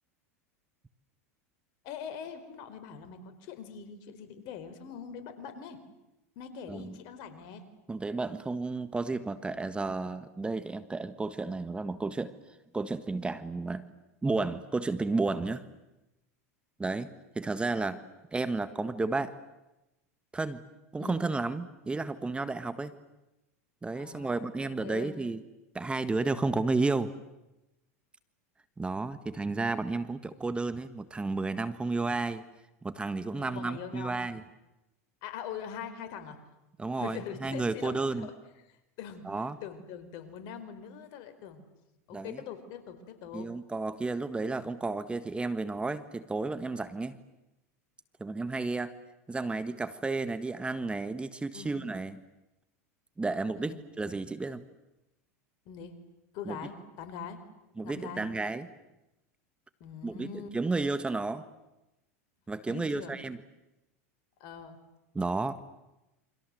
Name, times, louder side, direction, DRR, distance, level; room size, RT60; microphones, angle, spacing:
voice 1, 1.8-5.8 6.3-7.7 21.0-21.3 23.9-25.2 33.4-34.2 35.2-36.4 36.9-38.4 38.7-41.7 42.1-43.5 51.5-51.8 53.5-53.8 55.6-56.0 56.3-57.4 57.8-58.3 59.8-60.6 62.7-63.2 64.4-64.8, left 7 dB, 55° left, 9 dB, 4.7 m, -43 dB
voice 2, 7.9-12.3 12.7-13.8 14.2-15.6 16.8-17.1 17.3-18.0 18.3-19.3 20.3-20.6 20.9-22.9 23.8-25.4 25.7-27.1 28.8-32.4 32.8-34.4 36.8-38.3 39.2-39.6 42.1-42.4 43.3-47.2 48.2-48.9 49.3-52.2 53.2-54.6 56.5-56.6 57.8-58.7 60.0-61.4 62.5-63.4 65.1-65.6, right 3 dB, 10° right, 12 dB, 1.5 m, -32 dB
29.0 x 26.0 x 7.8 m, 0.96 s
hypercardioid pair, 105°, 8 cm